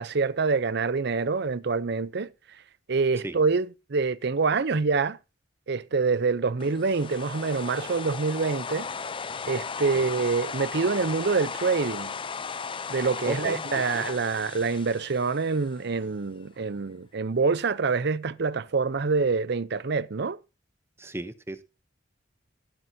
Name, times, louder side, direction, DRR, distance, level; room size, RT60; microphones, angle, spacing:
voice 1, 0.0-2.3 2.9-5.2 5.7-8.9 9.5-12.1 12.9-20.4, right 4 dB, 60° right, 0.6 m, -26 dB
sound 1, 6.6-15.8, left 5 dB, 25° left, 0.5 m, -36 dB
voice 2, 13.3-13.6 13.9-14.1 21.0-21.6, right 1 dB, 15° right, 0.7 m, -35 dB
19.0 x 9.1 x 2.7 m
head